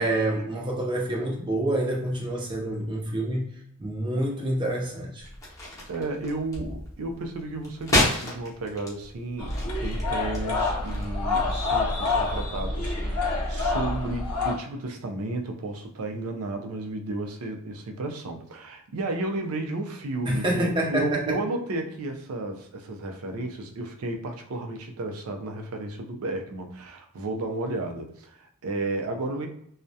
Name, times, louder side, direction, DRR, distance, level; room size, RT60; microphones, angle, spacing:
voice 1, 0.0-5.3 20.2-21.4, right 1 dB, 20° right, -1 dB, 0.6 m, -27 dB
sound 1, 5.2-11.1, left 1 dB, 15° left, 0.7 m, -31 dB
voice 2, 5.9-9.5 9.8-29.5, right 2 dB, 70° right, 4 dB, 0.4 m, -33 dB
sound 2, 9.4-14.5, left 3 dB, 85° left, 0.6 m, -27 dB
2.3 x 2.0 x 2.6 m, 0.70 s
head